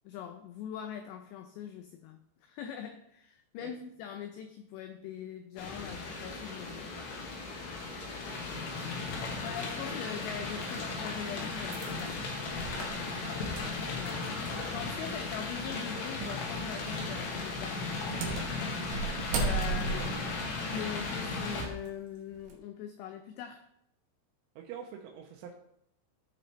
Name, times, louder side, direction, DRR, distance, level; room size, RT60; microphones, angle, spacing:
voice 1, 0.0-6.9 9.4-12.2 13.9-18.5 19.4-20.3 20.6-23.6, left 9 dB, 90° left, 6 dB, 2.4 m, -42 dB
sound 1, 5.6-21.7, left 3 dB, 70° left, 3.3 m, -36 dB
voice 2, 7.7-8.4 13.3-13.5 20.4-20.5 24.6-25.5, right 8 dB, 90° right, -1 dB, 3.3 m, -47 dB
sound 2, 10.2-10.3 11.0-14.5 14.8-14.9 16.2-16.5 16.9-17.2 17.9-21.9 22.3-22.6, right 4 dB, 70° right, 2.4 m, -37 dB
14.0 x 5.1 x 3.3 m, 0.75 s
omnidirectional pair, 5.6 m